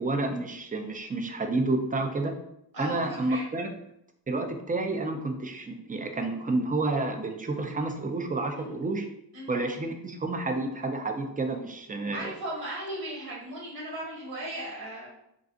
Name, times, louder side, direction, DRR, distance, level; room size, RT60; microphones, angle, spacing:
voice 1, 0.0-2.3 2.8-3.7 4.3-9.1 9.5-12.3, right 2 dB, 20° right, 5 dB, 0.5 m, -30 dB
voice 2, 2.7-3.5 8.6-8.8 9.3-9.6 12.1-15.1, right 1 dB, 70° right, -5 dB, 1.3 m, -37 dB
2.5 x 2.3 x 3.8 m, 0.78 s
cardioid pair, 55°, 41 cm